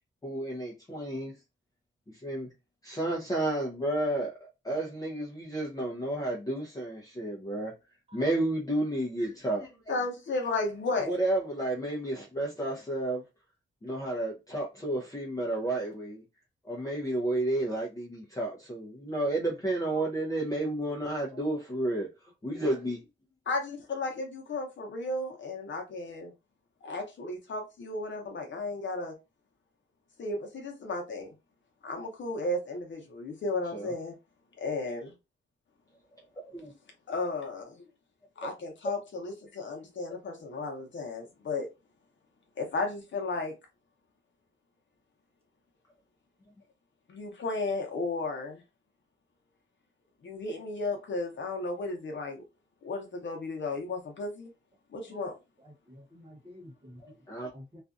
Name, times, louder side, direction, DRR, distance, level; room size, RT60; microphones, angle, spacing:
voice 1, 0.2-1.3 2.2-2.5 2.8-4.3 4.6-7.7 8.1-9.7 11.1-13.2 13.8-16.2 16.6-22.1 22.4-23.0 33.7-33.9 36.5-36.7 57.0-57.5, right 1 dB, 15° left, 0.6 m, -31 dB
voice 2, 9.9-11.1 23.5-26.3 26.8-29.1 30.2-31.3 31.8-34.1 34.6-35.1 37.1-37.8 38.4-41.7 42.6-43.5 47.1-48.6 50.2-52.4 52.8-54.5 54.9-55.3, left 2 dB, 60° left, 0.8 m, -34 dB
voice 3, 55.9-57.0 57.5-57.8, equal, 25° right, 1.0 m, -49 dB
2.5 x 2.3 x 2.4 m
wide cardioid pair, 160°, 21 cm